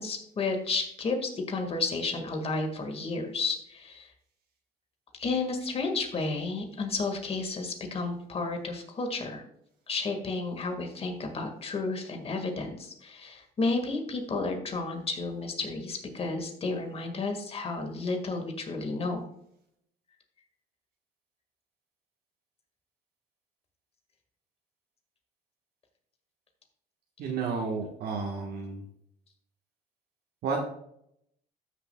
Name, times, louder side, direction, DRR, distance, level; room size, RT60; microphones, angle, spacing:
voice 1, 0.0-4.1 5.2-9.4 9.9-19.3, left 3 dB, 35° left, 4 dB, 1.8 m, -32 dB
voice 2, 27.2-28.8 30.4-30.7, right 4 dB, 70° right, -1 dB, 1.4 m, -31 dB
13.5 x 6.7 x 2.3 m, 0.74 s
cardioid pair, 110°, 17 cm